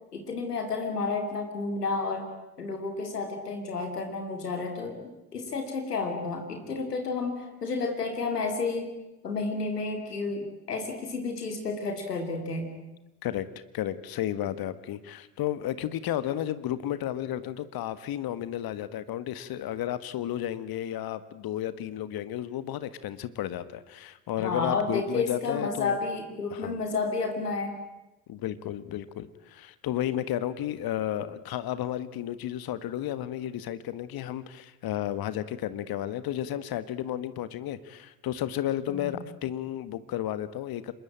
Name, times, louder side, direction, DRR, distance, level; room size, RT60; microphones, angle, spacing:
voice 1, 0.1-2.3 2.6-8.9 9.2-12.7 24.4-27.8 38.9-39.2, left 4 dB, 85° left, 4 dB, 2.8 m, -31 dB
voice 2, 13.7-26.0 26.5-26.8 28.3-40.9, left 12 dB, 50° left, 14 dB, 1.6 m, -32 dB
27.0 x 22.5 x 8.9 m, 1.0 s
figure-of-eight pair, 50°, 46 cm